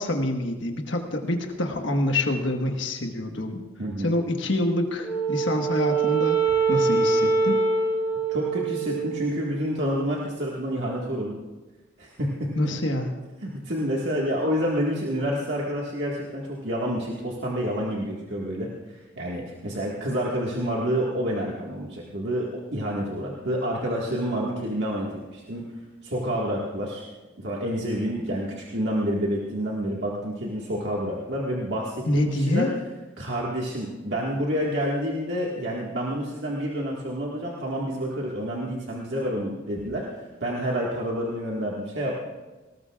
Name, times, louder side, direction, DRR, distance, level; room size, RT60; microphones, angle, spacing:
voice 1, 0.0-3.6 4.0-6.4 6.7-7.6 12.6-13.1 32.1-32.8 39.8-39.9, left 1 dB, 80° left, 3 dB, 1.4 m, -26 dB
Wind instrument woodwind instrument, 5.0-9.5, right 4 dB, 15° left, 2.4 m, -24 dB
voice 2, 8.3-11.4 12.0-12.5 13.4-25.6 26.0-27.1 27.4-32.7 33.2-40.1 40.4-42.3, equal, 65° right, -4 dB, 1.8 m, -28 dB
19.5 x 19.0 x 2.4 m, 1.2 s
head